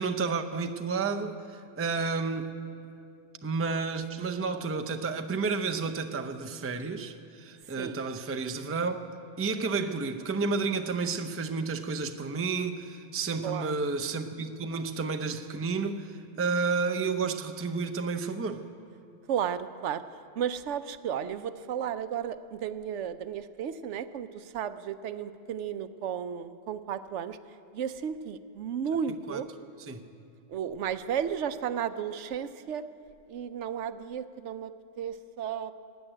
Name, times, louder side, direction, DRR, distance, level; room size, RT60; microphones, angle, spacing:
voice 1, 0.0-2.5 2.8-3.0 3.4-9.0 9.4-18.7 29.3-29.4 29.9-30.0, right 4 dB, 20° right, 0.4 m, -31 dB
voice 2, 13.4-13.7 19.3-20.0 20.4-27.4 27.7-29.5 30.5-32.8 33.3-35.7, right 8 dB, 80° right, 0.9 m, -33 dB
15.5 x 9.2 x 9.9 m
omnidirectional pair, 1.2 m